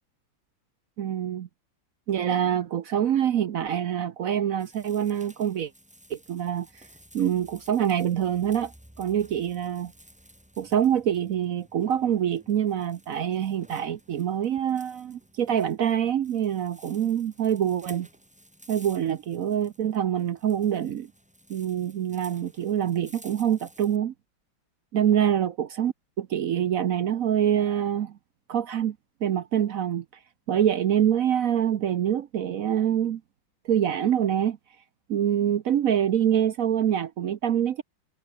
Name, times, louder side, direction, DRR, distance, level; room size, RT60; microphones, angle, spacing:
voice 1, 1.0-1.5 2.1-5.7 6.1-6.7 7.1-9.9 10.6-18.1 18.7-21.1 21.5-24.1 24.9-28.2 28.5-29.0 29.2-30.0 30.5-33.2 33.6-34.6 35.1-37.8, right 9 dB, 60° right, 1.0 m, -25 dB
sound 1, 4.6-24.0, equal, 5° right, 2.8 m, -54 dB
omnidirectional pair, 2.1 m